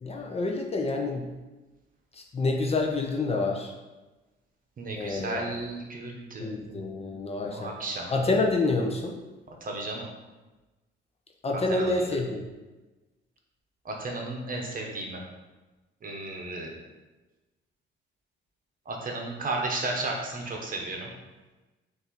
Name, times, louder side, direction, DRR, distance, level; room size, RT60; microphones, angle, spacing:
voice 1, 0.0-1.3 2.1-3.7 5.0-5.5 6.4-7.7 8.1-9.2 11.4-12.4, left 3 dB, 30° left, 1 dB, 0.6 m, -28 dB
voice 2, 4.8-6.9 7.4-8.1 9.6-10.1 11.7-11.9 13.8-15.2 16.0-16.8 18.9-21.1, right 2 dB, 45° right, 0 dB, 1.0 m, -34 dB
4.2 x 2.7 x 4.0 m, 1.1 s
cardioid pair, 90°, 20 cm